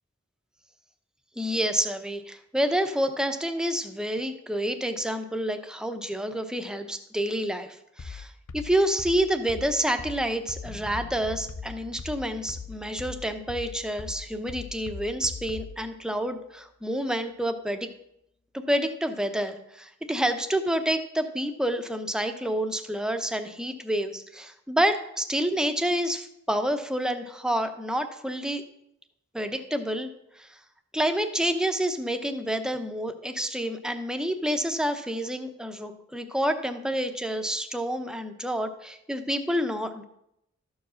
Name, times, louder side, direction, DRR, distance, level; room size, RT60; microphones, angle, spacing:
voice 1, 1.4-17.9 18.5-28.6 29.3-30.1 30.4-30.5 30.9-40.0, equal, 5° right, 7 dB, 0.7 m, -28 dB
sound 1, 8.0-15.8, left 5 dB, 80° left, 0.5 m, -40 dB
sound 2, 10.6-16.4, left 2 dB, 35° left, 0.7 m, -50 dB
13.0 x 4.8 x 6.3 m, 0.78 s
head